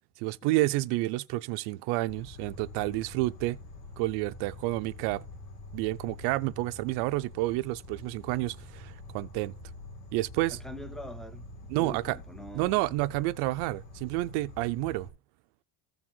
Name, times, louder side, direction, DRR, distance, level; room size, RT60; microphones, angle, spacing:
voice 1, 0.2-3.6 4.0-5.2 5.7-9.5 10.1-10.6 11.7-12.2 12.5-15.1, right 19 dB, 65° right, 0.5 m, -29 dB
Insect, 2.1-15.1, left 2 dB, 90° left, 3.3 m, -46 dB
voice 2, 10.5-11.5 11.8-12.9, equal, ahead, 0.5 m, -43 dB
15.0 x 5.0 x 3.7 m
cardioid pair, 150°, 43 cm